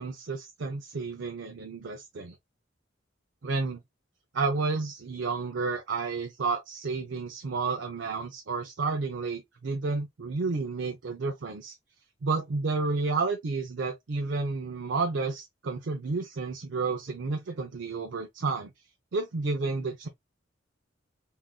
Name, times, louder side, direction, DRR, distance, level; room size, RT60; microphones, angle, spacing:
voice 1, 0.0-2.3 3.4-3.8 4.3-11.7 12.2-18.7 19.1-20.1, right 4 dB, 70° right, 0.5 m, -31 dB
3.7 x 2.5 x 2.2 m
head